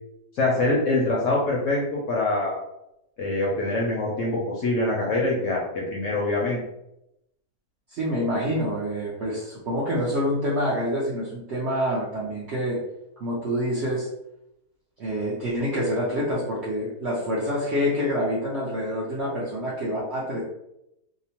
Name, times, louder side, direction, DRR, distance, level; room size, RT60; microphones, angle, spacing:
voice 1, 0.4-2.5 3.2-6.6, left 2 dB, 70° left, -3 dB, 0.8 m, -24 dB
voice 2, 7.9-12.8 13.2-14.1 15.0-20.4, equal, 70° right, -6 dB, 0.6 m, -27 dB
2.8 x 2.0 x 2.8 m, 0.84 s
omnidirectional pair, 1.8 m